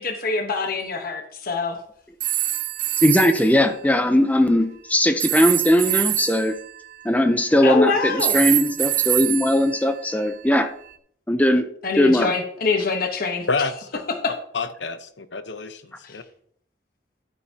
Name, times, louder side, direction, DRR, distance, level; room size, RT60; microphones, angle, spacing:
voice 1, 0.0-1.8 7.6-8.4 11.8-13.5 14.2-14.3 16.0-16.2, left 4 dB, 55° left, 4 dB, 1.2 m, -24 dB
sound 1, 2.2-3.5 5.2-7.7 8.2-10.5, right 13 dB, 50° right, 0.8 m, -25 dB
voice 2, 3.0-6.6 7.0-10.7 11.3-11.7 12.0-12.3, left 1 dB, 10° left, 8 dB, 0.7 m, -19 dB
voice 3, 13.5-14.0 14.5-16.2, left 4 dB, 85° left, 10 dB, 1.0 m, -28 dB
12.0 x 9.1 x 2.9 m, 0.63 s
head